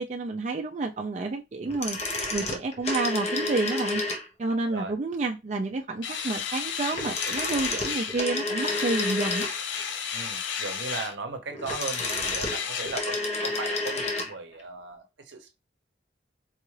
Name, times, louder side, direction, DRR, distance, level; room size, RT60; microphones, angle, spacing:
voice 1, 0.0-2.0 2.3-4.0 4.4-9.5, right 3 dB, 35° right, 0.3 m, -29 dB
sound 1, 1.7-4.5 6.9-9.8 11.5-14.3 14.6-14.7, left 2 dB, 35° left, 0.7 m, -30 dB
sound 2, 6.0-8.2 8.6-11.2 11.7-13.0, left 7 dB, 75° left, 0.5 m, -33 dB
voice 2, 10.1-15.6, right 3 dB, 75° right, 0.7 m, -37 dB
3.8 x 2.3 x 3.1 m
head